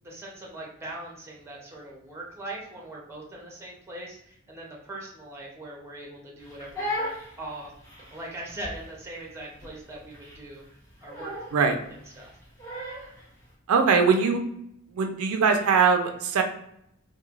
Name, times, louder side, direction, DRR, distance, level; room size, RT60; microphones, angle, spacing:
voice 1, 0.0-7.7 8.1-10.6 11.0-11.3 12.2-12.3, right 1 dB, 10° right, -3 dB, 0.6 m, -41 dB
Crying sobbing, 6.4-13.2, left 1 dB, 15° left, 0.9 m, -37 dB
voice 2, 13.7-14.4 14.9-16.4, right 5 dB, 85° right, 5 dB, 0.4 m, -21 dB
3.0 x 2.1 x 2.4 m, 0.75 s
head